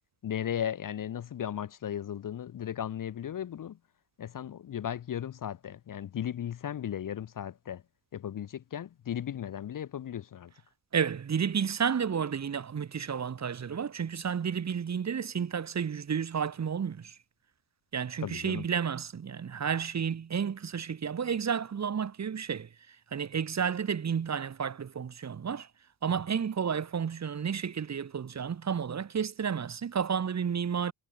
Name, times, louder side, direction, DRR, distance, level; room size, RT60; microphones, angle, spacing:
voice 1, 0.2-3.8 4.2-7.8 8.1-10.5 18.2-18.7, left 10 dB, 45° left, 0.7 m, -36 dB
voice 2, 10.9-17.2 17.9-22.7 23.1-25.7 26.0-30.9, right 7 dB, 35° right, 1.1 m, -31 dB
wide cardioid pair, 140°, 46 cm